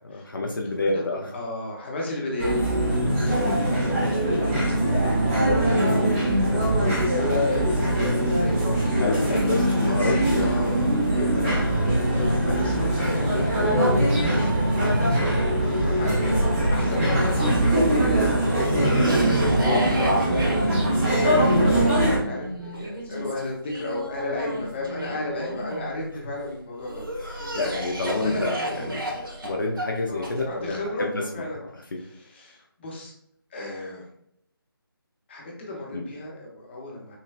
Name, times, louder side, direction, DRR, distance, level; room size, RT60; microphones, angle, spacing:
voice 1, 0.0-1.3 3.0-3.1 8.0-8.1 9.0-10.9 11.3-11.4 11.9-12.0 17.4-17.5 18.7-18.8 27.5-31.2 31.9-32.0 35.9-36.0, left 2 dB, 60° left, 0 dB, 0.7 m, -29 dB
voice 2, 0.6-1.0 1.3-4.8 5.2-27.7 28.2-28.4 30.1-33.1 33.5-34.1 35.3-37.2, left 2 dB, 30° left, -2 dB, 0.9 m, -35 dB
sound 1, 2.4-22.2, right 1 dB, 10° right, 0.8 m, -22 dB
Cough, 17.0-26.3 26.8-30.8, right 1 dB, 65° right, 1.4 m, -33 dB
5.7 x 2.1 x 2.4 m, 0.74 s
figure-of-eight pair, 155°, 12 cm